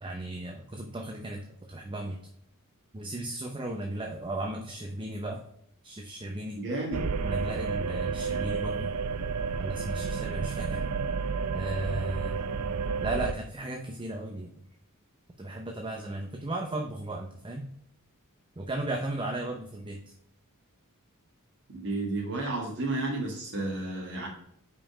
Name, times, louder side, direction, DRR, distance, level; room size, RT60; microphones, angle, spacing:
voice 1, 0.0-2.2 2.9-5.4 5.8-6.6 7.2-8.9 9.6-10.8 11.5-12.4 13.0-14.5 15.4-17.7 18.6-20.0, right 1 dB, 25° right, 3 dB, 0.7 m, -35 dB
voice 2, 6.6-7.0 21.7-24.3, right 2 dB, 55° right, -2 dB, 1.7 m, -32 dB
sound 1, 6.9-13.3, right 5 dB, 80° right, 0.5 m, -31 dB
5.6 x 5.0 x 4.9 m, 0.72 s
head